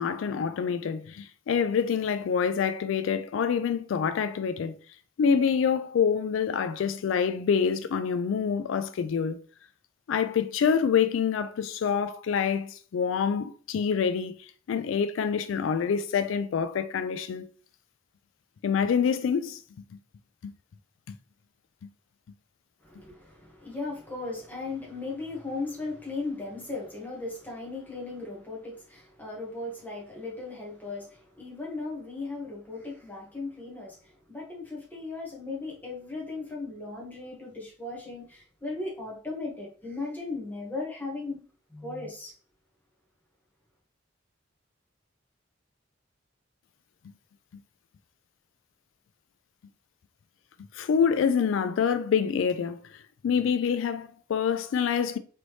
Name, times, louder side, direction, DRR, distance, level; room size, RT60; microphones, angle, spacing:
voice 1, 0.0-4.7 5.2-9.4 10.1-17.5 18.6-19.6 20.4-20.5 50.7-52.8 53.2-55.2, left 7 dB, 85° left, 0.3 m, -26 dB
voice 2, 22.8-41.4 41.7-42.3, left 3 dB, 10° left, 1.4 m, -37 dB
4.0 x 3.3 x 3.1 m
head